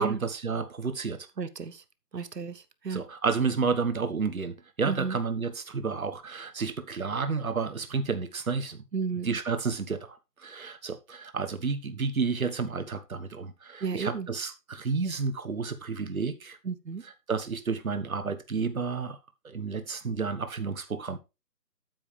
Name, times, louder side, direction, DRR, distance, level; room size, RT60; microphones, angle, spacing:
voice 1, 0.0-1.3 2.9-8.8 9.2-16.6 17.3-19.2 19.4-21.2, right 5 dB, 55° right, 1.3 m, -31 dB
voice 2, 1.4-1.8 2.1-3.0 4.8-5.2 8.9-9.4 13.8-14.3 16.6-17.0, right 5 dB, 80° right, 1.2 m, -33 dB
8.9 x 7.9 x 3.3 m
figure-of-eight pair, 175°, 49 cm